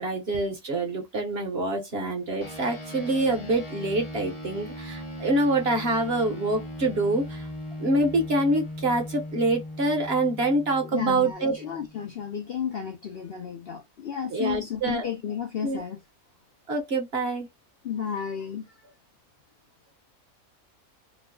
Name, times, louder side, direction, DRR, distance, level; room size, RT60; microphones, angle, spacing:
voice 1, 0.0-7.5 7.8-11.6 14.3-15.1 15.6-15.8 16.7-17.5, right 2 dB, 50° right, 1.0 m, -26 dB
sound 1, 2.4-12.1, equal, 25° left, 0.8 m, -39 dB
voice 2, 10.8-16.0 17.8-18.8, left 8 dB, 60° left, 0.6 m, -33 dB
3.0 x 2.1 x 3.6 m
omnidirectional pair, 1.5 m